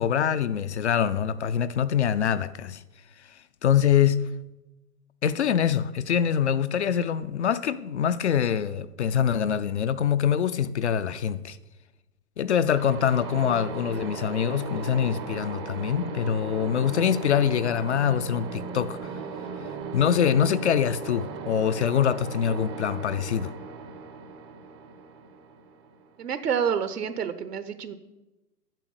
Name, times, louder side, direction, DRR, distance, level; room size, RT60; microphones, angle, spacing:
voice 1, 0.0-2.8 3.2-4.3 5.2-11.6 12.4-19.1 19.9-23.5, left 8 dB, 45° left, 0.5 m, -24 dB
sound 1, 12.7-26.4, right 5 dB, 20° right, 0.5 m, -37 dB
voice 2, 26.2-27.9, right 7 dB, 75° right, 1.0 m, -28 dB
9.0 x 7.2 x 7.9 m
hypercardioid pair, 130°, 47 cm